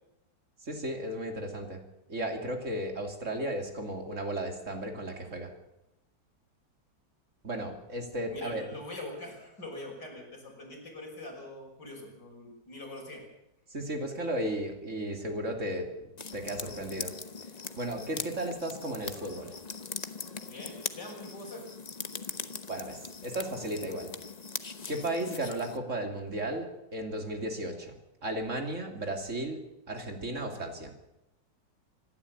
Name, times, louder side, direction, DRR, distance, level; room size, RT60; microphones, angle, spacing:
voice 1, 0.6-1.8 2.1-5.5 7.4-8.6 13.7-17.1 17.8-19.6 22.7-24.1 24.9-27.9 28.2-29.6 29.9-30.9, right 1 dB, 40° right, 4 dB, 3.2 m, -35 dB
voice 2, 8.3-13.2 20.4-21.6, left 2 dB, 65° left, 0 dB, 6.5 m, -43 dB
sound 1, 16.2-25.8, left 4 dB, 30° left, 0.8 m, -41 dB
25.5 x 12.0 x 8.5 m, 0.91 s
omnidirectional pair, 2.0 m